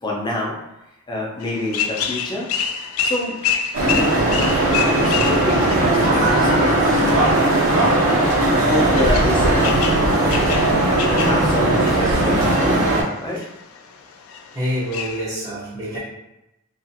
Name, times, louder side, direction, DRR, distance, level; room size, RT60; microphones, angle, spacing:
voice 1, 0.0-0.5 1.1-2.5 3.0-3.4 3.8-10.5 11.1-12.8 13.2-13.4, left 1 dB, 20° left, -3 dB, 0.5 m, -27 dB
sound 1, 1.4-15.2, left 7 dB, 85° left, 0.3 m, -29 dB
sound 2, 3.7-13.0, right 1 dB, 80° right, 0.9 m, -18 dB
sound 3, 4.1-4.5 5.6-6.0 7.1-7.5 8.3-8.7 9.3-9.6 10.3-10.7 11.2-11.5 12.4-13.0, equal, 55° right, 0.6 m, -34 dB
voice 2, 14.5-16.0, equal, 20° right, -11 dB, 0.6 m, -26 dB
2.4 x 2.4 x 2.6 m, 0.90 s
head